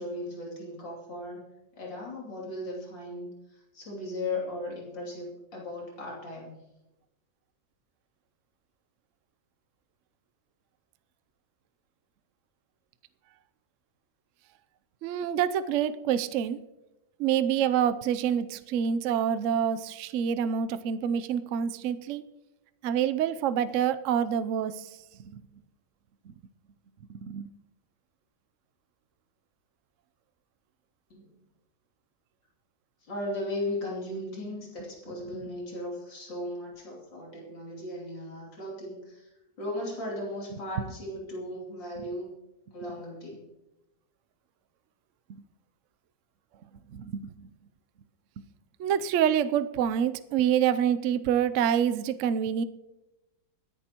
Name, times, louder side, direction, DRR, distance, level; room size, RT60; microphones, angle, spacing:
voice 1, 0.0-1.5 1.8-6.6 31.1-31.4 33.0-39.3 39.6-42.3 42.7-43.5, left 1 dB, 85° left, -3 dB, 3.6 m, -37 dB
voice 2, 15.0-16.6 17.2-22.2 22.8-24.8 25.3-25.4 26.3-26.4 27.2-27.5 46.9-47.2 48.8-52.6, right 9 dB, 65° right, 13 dB, 0.7 m, -27 dB
24.5 x 10.5 x 2.9 m, 0.97 s
omnidirectional pair, 1.9 m